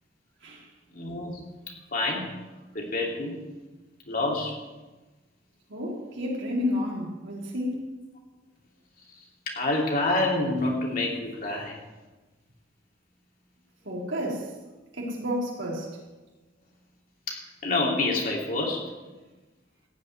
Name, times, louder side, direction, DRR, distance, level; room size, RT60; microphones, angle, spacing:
voice 1, 0.9-1.3 1.9-2.3 2.7-3.4 4.1-4.5 9.5-11.8 17.3-18.8, left 2 dB, 50° left, -1 dB, 2.9 m, -27 dB
voice 2, 5.7-7.8 13.8-14.5 14.9-15.9, left 1 dB, 85° right, -3 dB, 3.8 m, -31 dB
15.0 x 5.6 x 9.5 m, 1.2 s
head